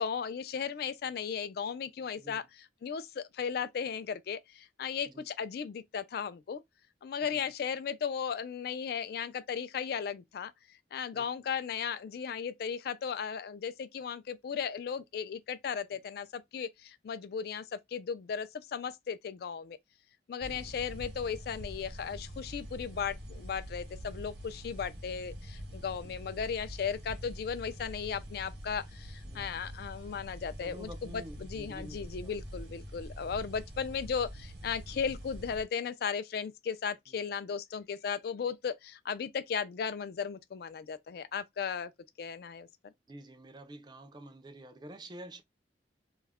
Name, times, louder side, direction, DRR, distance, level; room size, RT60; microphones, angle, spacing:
voice 1, 0.0-6.6 7.0-10.5 10.9-19.8 20.3-41.9 42.2-42.7, left 6 dB, 60° left, 0.3 m, -36 dB
voice 2, 2.2-2.5 5.1-5.3 7.3-7.6 11.1-11.3 15.9-16.0 20.4-20.8 26.0-26.2 29.2-29.7 30.6-32.4 34.9-35.0 43.1-45.4, right 1 dB, 25° right, 0.4 m, -49 dB
sound 1, 20.4-35.6, equal, 65° right, 1.0 m, -45 dB
2.3 x 2.0 x 3.4 m
head